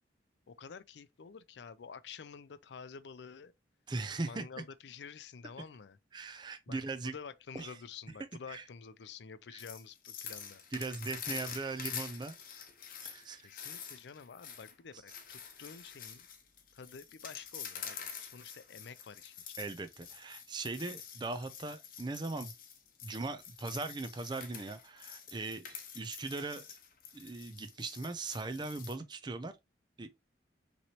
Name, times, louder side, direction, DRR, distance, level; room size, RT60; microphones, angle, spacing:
voice 1, 0.5-3.5 4.2-6.0 6.7-10.6 11.3-11.4 13.4-16.3 16.7-19.6, left 6 dB, 75° left, 0.4 m, -49 dB
voice 2, 3.9-4.4 6.1-7.1 7.5-7.7 8.5-8.6 9.5-9.6 10.7-12.3 13.0-13.5 19.6-22.5 23.0-26.8 27.1-29.5 30.0-30.1, right 3 dB, 25° right, 0.5 m, -39 dB
sound 1, 9.6-29.0, left 7 dB, 50° left, 1.0 m, -47 dB
5.9 x 3.1 x 2.8 m
head